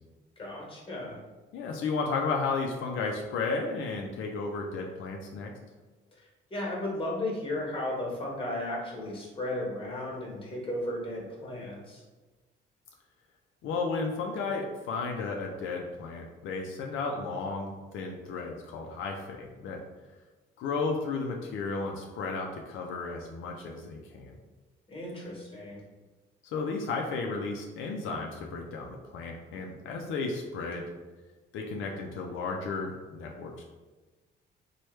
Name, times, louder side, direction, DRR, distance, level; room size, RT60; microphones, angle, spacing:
voice 1, 0.4-1.2 6.2-12.0 24.9-25.8, left 1 dB, 25° left, -3 dB, 1.2 m, -35 dB
voice 2, 1.5-5.5 13.6-19.8 20.6-24.3 26.5-30.9 31.5-33.6, left 4 dB, 80° left, 1 dB, 0.4 m, -33 dB
3.1 x 2.2 x 3.1 m, 1.3 s
cardioid pair, 90°, 20 cm